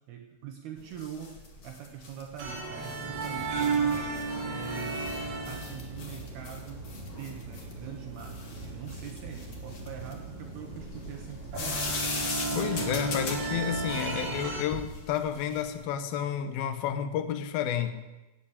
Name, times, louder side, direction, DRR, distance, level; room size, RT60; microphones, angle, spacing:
voice 1, 0.0-4.1 4.4-12.0, right 9 dB, 70° right, 4 dB, 2.5 m, -43 dB
sound 1, 0.8-15.8, left 3 dB, 45° left, 1.6 m, -40 dB
sound 2, 2.4-14.6, right 4 dB, 50° right, 4.0 m, -35 dB
voice 2, 12.5-17.9, left 9 dB, 75° left, 9 dB, 2.3 m, -31 dB
18.0 x 8.6 x 8.6 m, 1.1 s
omnidirectional pair, 5.8 m